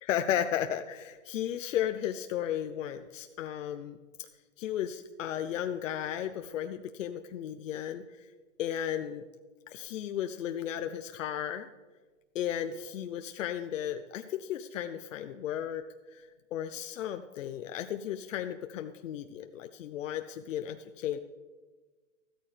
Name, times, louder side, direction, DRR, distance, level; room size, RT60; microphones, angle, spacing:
voice 1, 0.0-4.3 4.6-8.3 8.6-9.2 9.7-11.7 12.3-15.8 16.1-21.2, left 10 dB, 80° left, 8 dB, 0.7 m, -34 dB
14.0 x 13.0 x 3.3 m, 1.3 s
supercardioid pair, 170°, 38 cm